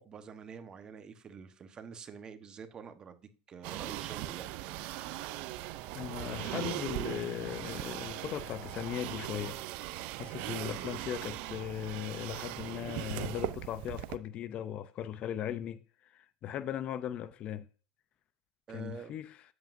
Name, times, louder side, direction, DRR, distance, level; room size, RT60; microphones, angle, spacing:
voice 1, 0.0-4.5 18.7-19.1, right 6 dB, 30° right, 1.1 m, -47 dB
sound 1, 3.6-14.2, right 15 dB, 60° right, 0.5 m, -39 dB
voice 2, 5.9-9.6 10.2-17.7 18.7-19.4, left 10 dB, 45° left, 0.5 m, -38 dB
8.9 x 7.9 x 2.6 m
hypercardioid pair, 100°, 3 cm